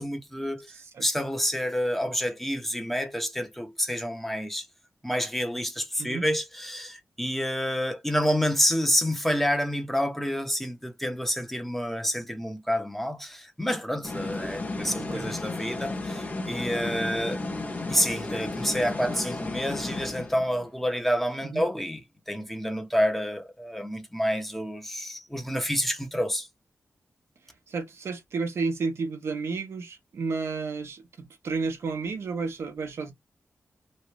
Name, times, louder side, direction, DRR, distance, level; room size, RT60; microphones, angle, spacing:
voice 1, 0.0-0.7 1.0-4.7 5.0-17.4 17.9-22.0 22.3-26.5, equal, 5° left, 1.0 m, -28 dB
voice 2, 0.7-1.0 6.0-6.2 15.0-15.4 21.4-21.6 27.7-33.1, right 4 dB, 80° right, 1.0 m, -32 dB
sound 1, 14.0-20.7, left 2 dB, 40° left, 1.0 m, -33 dB
3.1 x 2.7 x 3.1 m
cardioid pair, 80°, 4 cm